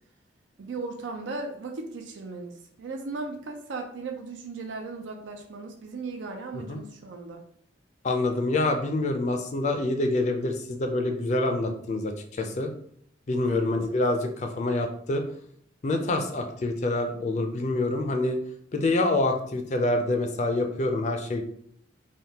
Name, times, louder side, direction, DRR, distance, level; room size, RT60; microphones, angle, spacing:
voice 1, 0.6-7.4 13.4-13.7, right 3 dB, 90° right, 3 dB, 0.5 m, -37 dB
voice 2, 8.0-12.7 13.3-15.2 15.8-18.4 18.7-21.4, left 2 dB, 40° left, 5 dB, 0.4 m, -26 dB
3.4 x 2.2 x 2.8 m, 0.66 s
head